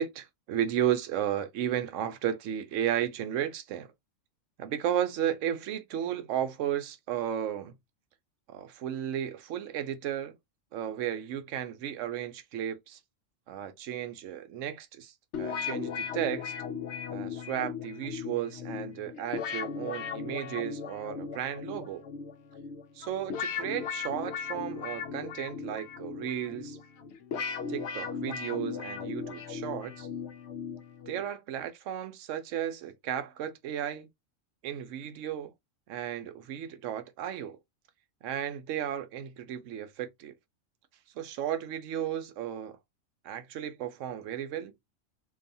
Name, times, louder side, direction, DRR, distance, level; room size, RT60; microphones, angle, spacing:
voice 1, 0.0-3.9 4.6-7.7 8.5-10.3 10.7-13.0 13.5-16.5 17.1-22.0 23.0-26.8 27.7-30.1 31.1-34.1 34.6-35.5 35.9-37.6 38.2-40.3 41.2-42.8 43.2-44.7, right 10 dB, 75° right, 0.9 m, -34 dB
sound 1, 15.3-31.3, left 6 dB, 65° left, 0.8 m, -37 dB
2.6 x 2.3 x 2.6 m
omnidirectional pair, 1.4 m